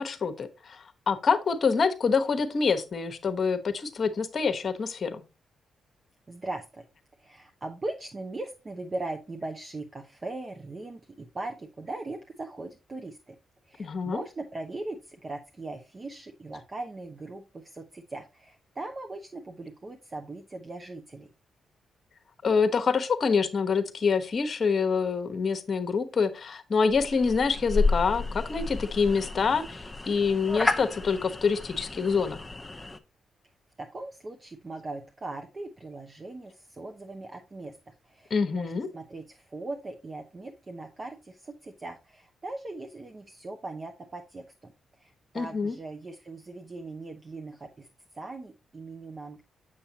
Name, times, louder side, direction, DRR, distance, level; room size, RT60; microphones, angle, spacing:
voice 1, 0.0-5.2 13.8-14.2 22.4-32.5 38.3-38.9 45.3-45.7, left 5 dB, 55° left, 11 dB, 1.0 m, -26 dB
voice 2, 6.3-6.9 7.2-13.4 13.6-21.3 33.8-44.7 45.0-47.9 48.1-49.4, right 2 dB, 40° right, 4 dB, 0.8 m, -39 dB
sound 1, 26.9-33.0, left 3 dB, 20° left, 0.7 m, -31 dB
6.9 x 6.8 x 2.8 m, 0.29 s
supercardioid pair, 55°, 0 cm